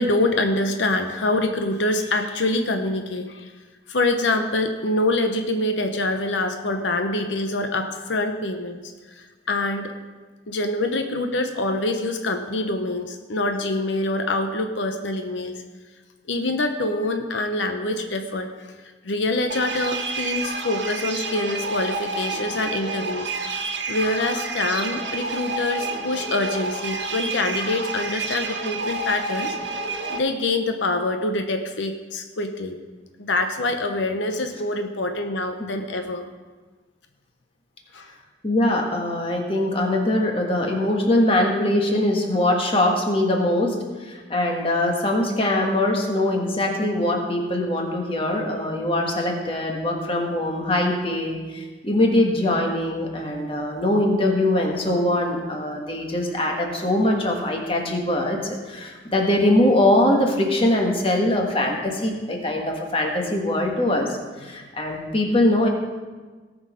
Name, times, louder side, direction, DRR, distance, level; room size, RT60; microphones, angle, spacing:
voice 1, 0.0-3.5 3.9-9.9 10.5-15.6 16.3-23.5 23.9-29.7 30.1-32.8 33.2-36.2 37.9-38.1, left 2 dB, 85° left, 6 dB, 0.8 m, -25 dB
sound 1, 19.5-30.2, right 3 dB, 80° right, 1.2 m, -29 dB
voice 2, 38.4-43.8 44.0-64.1 64.4-65.7, left 1 dB, 30° left, 1 dB, 1.5 m, -22 dB
18.0 x 6.3 x 5.0 m, 1.4 s
head